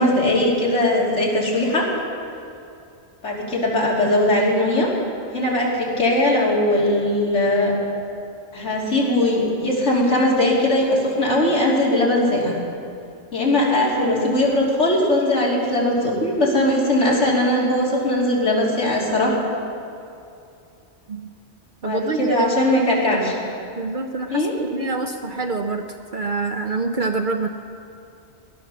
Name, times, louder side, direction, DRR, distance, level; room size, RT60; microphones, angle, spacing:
voice 1, 0.0-1.9 3.2-4.9 5.3-7.7 8.5-12.6 13.3-19.4 21.8-23.4 24.3-24.5, left 1 dB, 90° left, -4 dB, 3.5 m, -20 dB
voice 2, 21.8-22.5 23.1-23.2 23.8-24.5 24.7-25.9 26.1-27.5, right 3 dB, 50° right, 5 dB, 0.8 m, -26 dB
18.0 x 11.0 x 6.9 m, 2.6 s
omnidirectional pair, 1.2 m